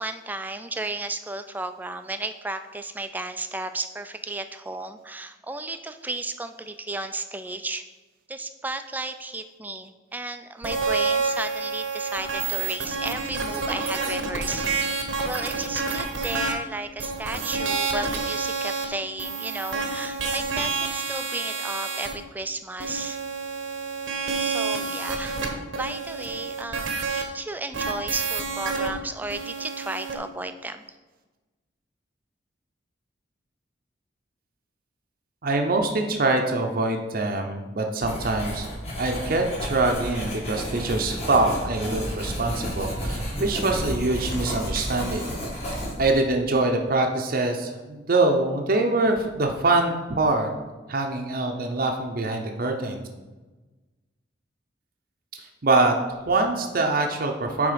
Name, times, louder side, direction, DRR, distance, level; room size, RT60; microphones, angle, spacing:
voice 1, 0.0-7.8 8.3-14.7 15.2-23.2 24.4-30.8, right 2 dB, 10° right, 9 dB, 0.3 m, -34 dB
sound 1, 10.6-16.5 17.0-18.9 19.2-22.1 22.8-27.2 27.7-28.9 29.3-30.2, right 4 dB, 90° right, 1.0 m, -28 dB
voice 2, 35.4-38.7 39.0-45.3 45.7-50.5 50.9-53.0 55.3-55.9 56.3-57.7, right 2 dB, 50° right, 3 dB, 0.7 m, -24 dB
Writing, 38.0-46.2, equal, 35° left, 1.7 m, -32 dB
8.5 x 3.5 x 5.1 m, 1.2 s
head